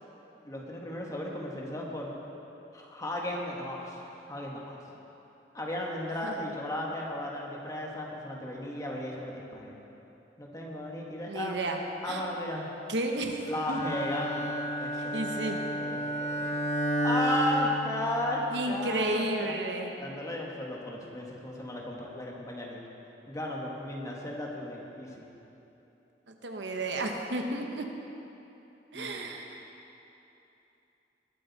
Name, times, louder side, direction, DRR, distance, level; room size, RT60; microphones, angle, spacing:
voice 1, 0.4-2.1 2.7-4.0 4.3-4.8 5.5-9.8 10.4-11.6 12.0-12.7 13.5-16.5 17.0-19.6 20.0-22.8 23.3-25.3 28.9-29.3, left 1 dB, 20° left, -2 dB, 1.7 m, -35 dB
voice 2, 6.2-6.5 11.3-12.2 12.9-13.8 14.9-15.6 18.5-19.9 26.3-27.9 28.9-29.7, right 2 dB, 90° right, 3 dB, 1.2 m, -33 dB
Bowed string instrument, 13.6-18.6, equal, 40° left, 0.8 m, -31 dB
20.5 x 8.8 x 4.2 m, 3.0 s
head